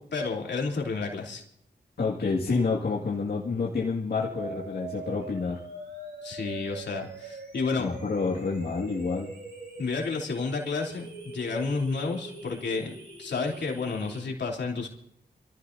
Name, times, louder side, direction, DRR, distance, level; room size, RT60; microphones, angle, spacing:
voice 1, 0.1-1.4 6.2-7.9 9.8-12.9 13.2-14.9, left 4 dB, 80° left, 0 dB, 3.0 m, -31 dB
voice 2, 2.0-5.6 7.8-9.3, left 4 dB, 65° left, -4 dB, 1.9 m, -28 dB
sound 1, 4.2-14.2, right 3 dB, 80° right, 6.0 m, -42 dB
27.0 x 14.5 x 2.6 m, 0.69 s
wide cardioid pair, 85°, 18 cm